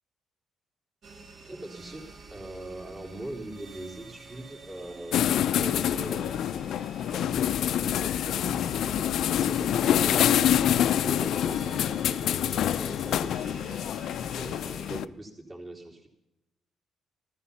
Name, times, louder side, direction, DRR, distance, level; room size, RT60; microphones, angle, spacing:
sound 1, 1.0-15.0, right 4 dB, 55° right, 1.9 m, -49 dB
voice 1, 1.5-6.4 7.1-16.1, right 1 dB, 30° right, 0 dB, 3.7 m, -42 dB
sound 2, 5.1-15.0, left 10 dB, 75° left, 0.4 m, -26 dB
14.5 x 14.0 x 5.7 m, 0.91 s
cardioid pair, 90°, 0 cm